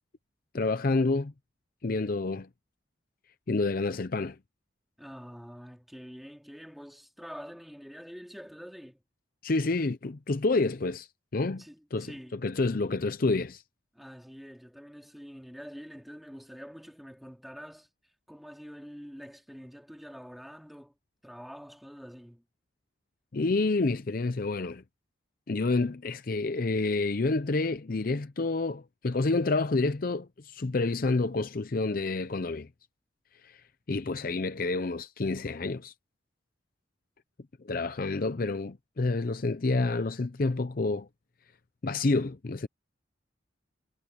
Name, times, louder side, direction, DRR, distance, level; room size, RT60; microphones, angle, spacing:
voice 1, 0.5-1.3 1.8-2.5 3.5-4.4 9.4-11.6 11.9-13.6 23.3-24.8 25.5-32.7 33.4-33.6 33.9-35.9 37.6-41.1 41.8-42.7, left 3 dB, 45° left, 0.6 m, -28 dB
voice 2, 5.0-9.0 11.6-12.4 13.9-17.9 18.3-20.9 21.2-22.4, equal, ahead, 3.3 m, -46 dB
head